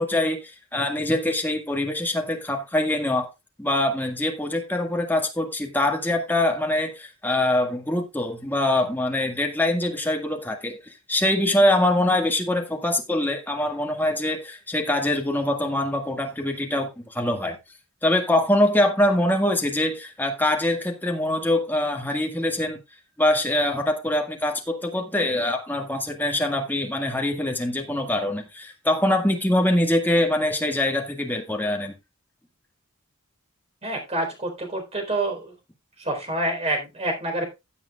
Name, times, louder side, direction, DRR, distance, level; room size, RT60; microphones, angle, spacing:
voice 1, 0.0-3.3 3.6-17.6 18.0-22.8 23.2-31.9, left 1 dB, 10° left, 1.7 m, -24 dB
voice 2, 33.8-35.5 36.0-37.5, right 1 dB, 30° right, 4.0 m, -27 dB
16.0 x 7.9 x 2.4 m
head